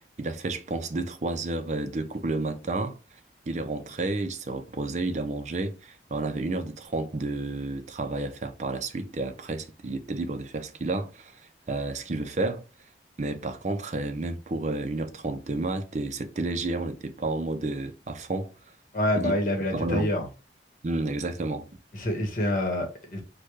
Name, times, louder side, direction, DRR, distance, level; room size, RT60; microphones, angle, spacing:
voice 1, 0.2-3.0 3.5-11.4 11.7-12.6 13.2-18.5 19.2-19.3 19.7-20.1 20.8-21.7, right 2 dB, 40° right, 0.5 m, -31 dB
voice 2, 18.9-20.3 21.9-23.2, left 1 dB, 45° left, 1.3 m, -27 dB
6.4 x 2.3 x 3.2 m
head